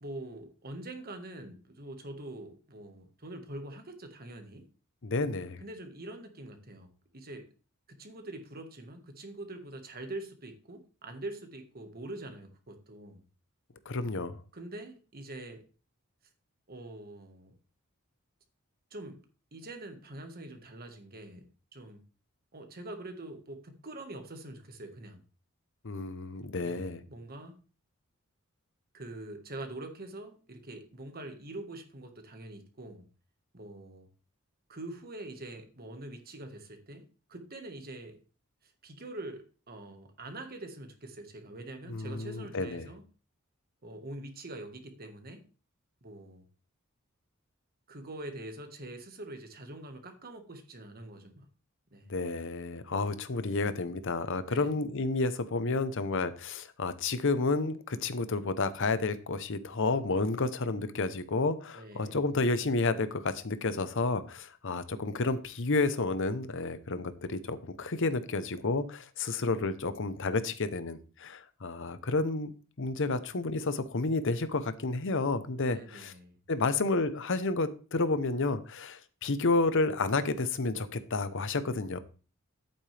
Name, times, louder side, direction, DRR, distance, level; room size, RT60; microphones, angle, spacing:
voice 1, 0.0-4.6 5.6-7.5 7.9-13.2 14.5-15.6 16.7-17.6 18.9-19.3 19.5-22.0 22.5-25.2 26.6-27.6 28.9-33.1 33.5-34.1 34.7-38.2 38.6-43.0 43.8-45.5 46.0-46.4 47.9-51.5 51.9-52.1 54.4-54.7 61.7-62.2 75.7-76.4, right 2 dB, 45° right, 6 dB, 1.6 m, -44 dB
voice 2, 5.0-5.6 13.9-14.4 25.8-27.0 41.9-42.9 52.1-76.1 76.5-82.0, left 3 dB, 65° left, 12 dB, 0.9 m, -31 dB
10.5 x 8.7 x 3.4 m, 0.37 s
head